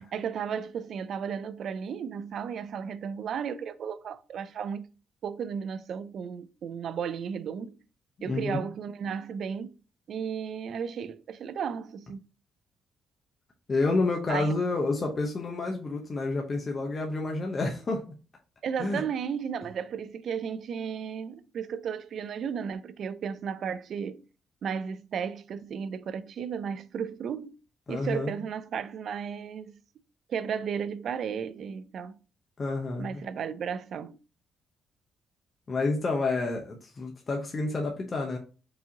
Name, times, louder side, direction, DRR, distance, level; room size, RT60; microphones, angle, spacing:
voice 1, 0.0-4.9 5.2-7.8 8.2-9.8 10.1-12.2 14.3-14.6 18.6-24.2 24.6-27.5 27.9-29.8 30.3-32.2 33.0-34.2, right 7 dB, 65° right, 0.3 m, -34 dB
voice 2, 8.2-8.6 13.7-18.1 18.8-19.0 27.9-28.4 32.6-33.2 35.7-38.4, left 3 dB, 35° left, 0.7 m, -29 dB
4.7 x 2.7 x 2.7 m
cardioid pair, 90°, 0 cm